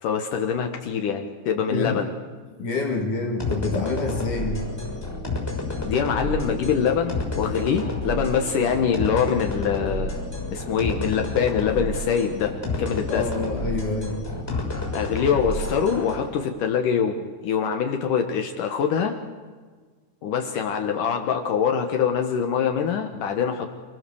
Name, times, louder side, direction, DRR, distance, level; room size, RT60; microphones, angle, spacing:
voice 1, 0.0-2.1 5.8-10.2 10.5-12.5 12.8-13.3 14.9-19.2 20.2-23.7, left 7 dB, 75° left, 4 dB, 1.9 m, -24 dB
voice 2, 1.7-2.0 2.6-4.7 13.1-14.2, left 3 dB, 50° left, 2 dB, 2.9 m, -27 dB
sound 1, 3.4-16.3, left 2 dB, 5° left, 5.7 m, -30 dB
28.0 x 19.5 x 7.0 m, 1.5 s
omnidirectional pair, 5.6 m